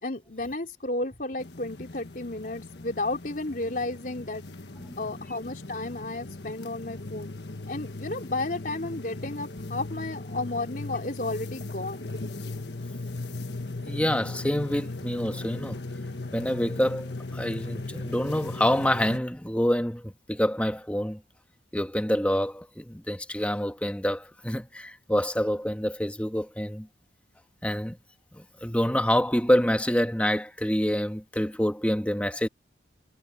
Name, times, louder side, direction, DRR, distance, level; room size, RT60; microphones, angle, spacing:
voice 1, 0.0-4.4 5.0-7.3 7.7-12.1, left 2 dB, 50° left, 3.7 m, -33 dB
sound 1, 1.4-19.2, left 2 dB, 70° left, 1.5 m, -38 dB
voice 2, 13.7-15.8 16.3-21.2 21.7-26.9 27.6-28.0 28.3-32.5, equal, 5° left, 1.5 m, -27 dB
head